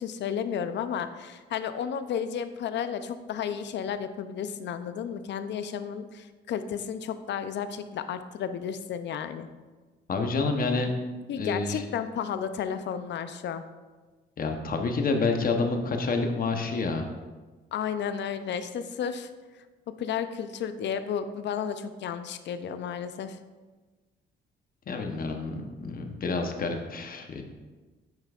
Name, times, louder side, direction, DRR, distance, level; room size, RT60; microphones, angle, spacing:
voice 1, 0.0-9.5 11.3-13.6 17.7-19.3 20.0-23.4, left 8 dB, 65° left, 11 dB, 0.5 m, -32 dB
voice 2, 10.1-10.9 11.4-11.8 14.4-17.1 24.9-27.4, left 3 dB, 45° left, 4 dB, 0.9 m, -28 dB
8.9 x 5.6 x 2.4 m, 1.3 s
cardioid pair, 90°, 20 cm